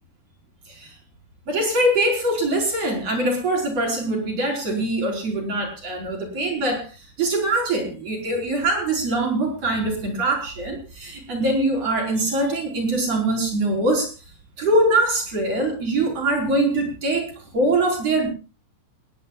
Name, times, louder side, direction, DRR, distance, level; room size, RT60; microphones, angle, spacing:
voice 1, 1.5-6.9 7.2-14.1 14.6-18.3, right 2 dB, 45° right, 1 dB, 5.9 m, -23 dB
28.5 x 11.0 x 2.4 m, 0.32 s
omnidirectional pair, 4.2 m